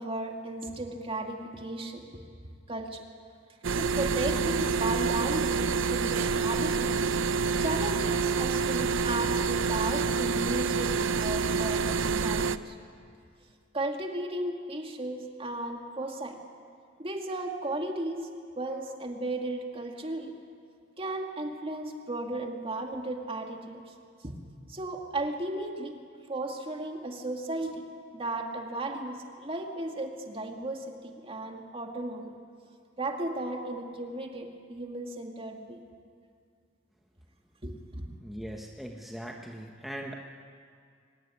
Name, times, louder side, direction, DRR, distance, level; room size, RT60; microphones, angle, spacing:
voice 1, 0.0-2.1 2.7-3.0 3.7-7.1 7.6-12.8 13.7-16.4 17.0-18.3 18.6-20.3 21.0-23.8 24.2-24.4 24.7-26.0 26.3-27.8 28.1-32.3 33.0-35.8 37.6-38.1, right 2 dB, 30° right, 3 dB, 2.3 m, -35 dB
sound 1, 3.6-12.6, right 5 dB, 90° right, 0.7 m, -27 dB
voice 2, 38.2-40.1, equal, ahead, 0 dB, 1.2 m, -40 dB
24.0 x 18.0 x 9.9 m, 2.3 s
head